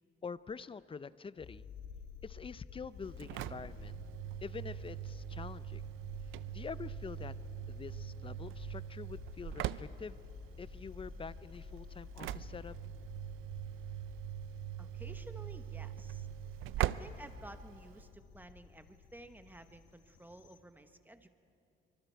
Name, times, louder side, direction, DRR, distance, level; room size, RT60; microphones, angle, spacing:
voice 1, 0.2-1.6 2.2-4.0 4.4-5.8 6.5-7.3 7.7-10.2 10.6-12.8, left 5 dB, 25° left, 17 dB, 0.5 m, -46 dB
sound 1, 1.4-20.6, left 5 dB, 65° left, 1.6 m, -51 dB
Engine / Slam, 3.0-18.1, right 14 dB, 90° right, 0.5 m, -42 dB
voice 2, 14.8-16.3 16.8-21.3, right 1 dB, 10° right, 8 dB, 1.2 m, -53 dB
25.5 x 24.0 x 4.6 m, 2.5 s
cardioid pair, 90°, 20 cm